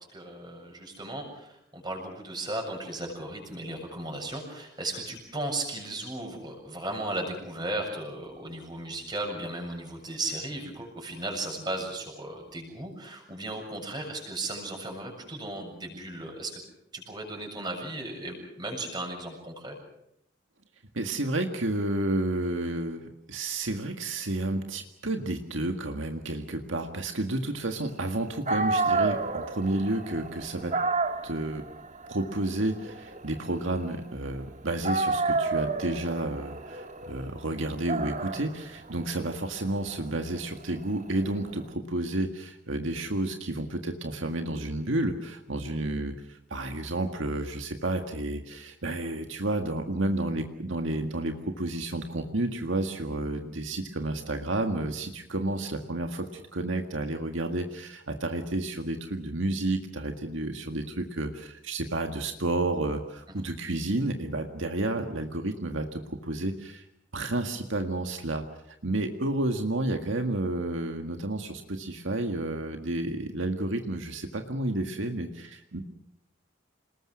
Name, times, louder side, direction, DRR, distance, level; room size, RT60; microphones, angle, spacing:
voice 1, 0.0-16.6 16.9-19.8 63.3-63.5, right 2 dB, 20° right, 2 dB, 7.2 m, -36 dB
voice 2, 20.9-30.7 31.2-31.7 32.1-66.9 67.1-75.8, right 2 dB, 70° right, 5 dB, 1.8 m, -31 dB
Dog, 28.2-28.3 28.5-34.5 34.8-41.6, right 3 dB, 35° right, 1.6 m, -31 dB
28.5 x 20.5 x 6.4 m, 0.79 s
head